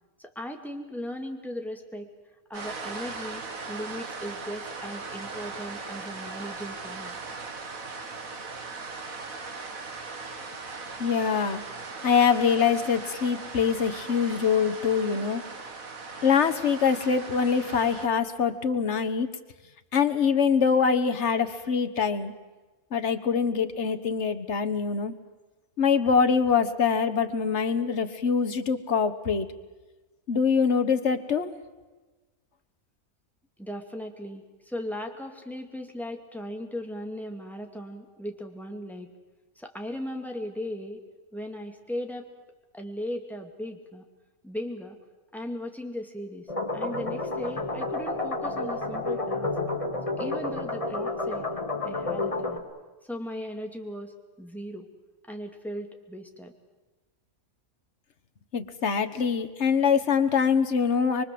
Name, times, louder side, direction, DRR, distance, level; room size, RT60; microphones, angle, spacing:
voice 1, 0.2-2.1 2.5-3.4 3.7-7.2 33.6-39.1 39.6-41.0 41.3-42.2 42.7-44.0 44.4-45.0 45.3-49.5 50.2-51.5 51.8-52.7 53.0-54.9 55.3-56.5, equal, ahead, 3 dB, 2.3 m, -37 dB
sound 1, 2.5-18.1, right 4 dB, 75° right, 2.3 m, -39 dB
voice 2, 11.0-11.6 12.0-15.4 16.2-19.3 19.9-22.3 22.9-25.1 25.8-29.5 30.3-31.5 58.5-61.2, left 6 dB, 55° left, 9 dB, 1.6 m, -24 dB
sound 2, 46.5-52.6, left 2 dB, 25° left, 2.1 m, -30 dB
24.0 x 24.0 x 7.7 m, 1.2 s
omnidirectional pair, 1.5 m